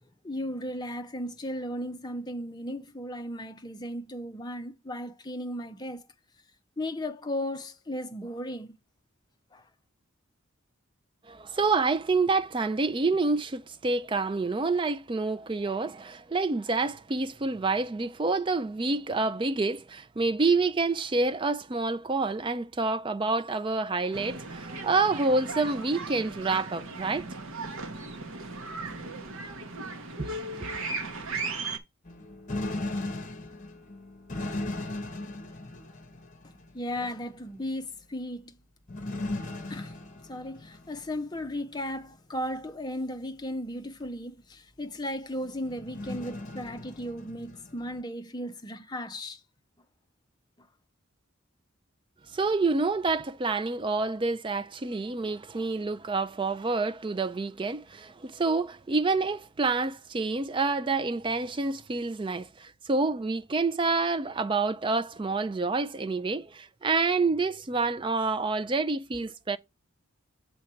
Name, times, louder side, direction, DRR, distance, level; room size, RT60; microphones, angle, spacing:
voice 1, 0.2-6.1 6.8-8.7 9.5-9.6 36.4-38.6 39.7-39.9 40.3-49.4 50.6-50.7, left 1 dB, 20° left, 0.6 m, -36 dB
voice 2, 11.3-27.3 30.2-30.7 52.3-69.6, right 3 dB, 25° right, 0.3 m, -28 dB
sound 1, 24.1-31.8, right 3 dB, 70° right, 1.1 m, -37 dB
sound 2, 32.1-36.9 38.9-41.0 41.4-41.5 44.0-44.1 45.6-48.0, left 2 dB, 35° left, 1.1 m, -37 dB
6.3 x 4.6 x 4.3 m
head